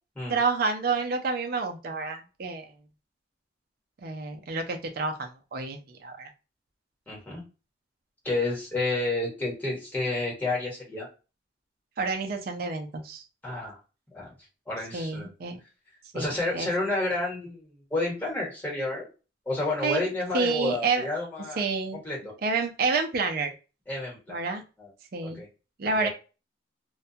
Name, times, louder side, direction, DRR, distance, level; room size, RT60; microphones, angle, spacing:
voice 1, 0.3-2.6 4.0-6.3 12.0-13.2 14.9-15.6 16.1-16.7 19.8-20.0 20.3-21.0 21.6-22.0 22.4-23.5 24.3-24.6 25.1-25.4 25.8-26.1, right 4 dB, 55° right, 4 dB, 0.5 m, -29 dB
voice 2, 7.1-7.4 8.2-11.1 13.4-13.8 14.1-14.3 14.7-15.3 16.1-19.1 19.5-21.6 21.9-22.3 23.9-24.4 24.8-24.9 25.2-25.5 25.8-26.1, left 2 dB, 10° left, -3 dB, 1.1 m, -30 dB
2.2 x 2.2 x 2.7 m, 0.32 s
head